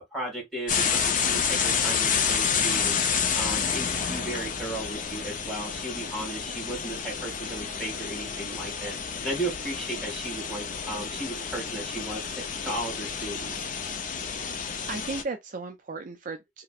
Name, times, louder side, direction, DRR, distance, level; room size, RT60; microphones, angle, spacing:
voice 1, 0.0-3.0 3.4-8.9 9.2-13.5, right 1 dB, ahead, 2.0 m, -35 dB
sound 1, 0.7-15.2, left 6 dB, 45° left, 0.5 m, -29 dB
voice 2, 14.9-16.6, right 3 dB, 45° right, 0.4 m, -36 dB
3.2 x 2.9 x 2.4 m
head